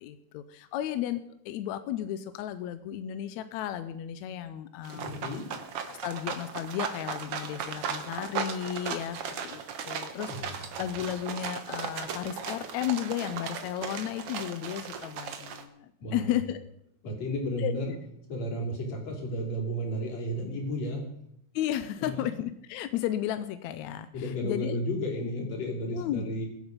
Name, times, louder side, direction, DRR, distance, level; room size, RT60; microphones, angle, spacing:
voice 1, 0.0-5.3 5.9-16.6 17.6-17.7 21.5-24.8 25.9-26.4, left 11 dB, 80° left, 11 dB, 1.7 m, -34 dB
sound 1, 4.8-15.6, right 7 dB, 60° right, 1.8 m, -37 dB
voice 2, 4.9-5.4 10.3-10.6 16.0-16.4 17.0-17.9 18.3-21.0 22.0-22.3 24.1-26.5, equal, 55° left, 1 dB, 4.0 m, -33 dB
22.0 x 8.2 x 5.3 m, 0.76 s
omnidirectional pair, 3.8 m